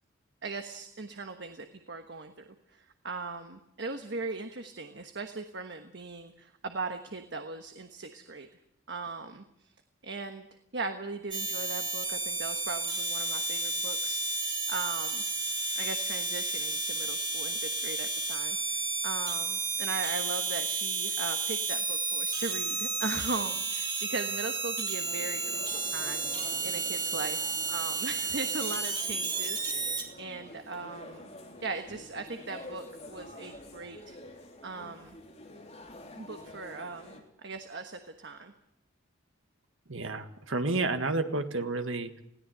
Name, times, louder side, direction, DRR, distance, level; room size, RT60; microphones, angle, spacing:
voice 1, 0.4-2.3 2.7-8.5 8.9-9.7 10.0-10.5 10.7-15.2 15.8-31.3 31.6-34.1 34.6-35.2 36.1-38.5, right 3 dB, 55° right, 6 dB, 1.3 m, -39 dB
sound 1, 11.3-30.0, right 3 dB, 20° right, 2.7 m, -32 dB
sound 2, 25.0-37.2, left 1 dB, 35° left, 3.4 m, -48 dB
voice 2, 39.9-42.2, right 3 dB, 75° right, 8 dB, 1.6 m, -30 dB
20.5 x 17.0 x 7.9 m, 0.77 s
head